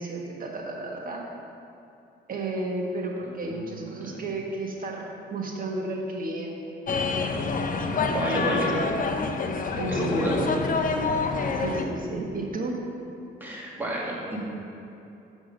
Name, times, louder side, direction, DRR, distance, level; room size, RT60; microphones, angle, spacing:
voice 1, 0.0-1.3 2.3-7.0 8.3-8.9 9.8-10.5 11.6-12.8, right 2 dB, 45° right, 0 dB, 1.5 m, -32 dB
voice 2, 3.2-4.1 8.0-8.7 9.9-10.4 13.4-14.4, right 1 dB, 10° right, -5 dB, 2.1 m, -31 dB
sound 1, 6.9-11.9, left 4 dB, 45° left, 0.7 m, -27 dB
7.6 x 6.2 x 5.3 m, 2.8 s
cardioid pair, 90°, 20 cm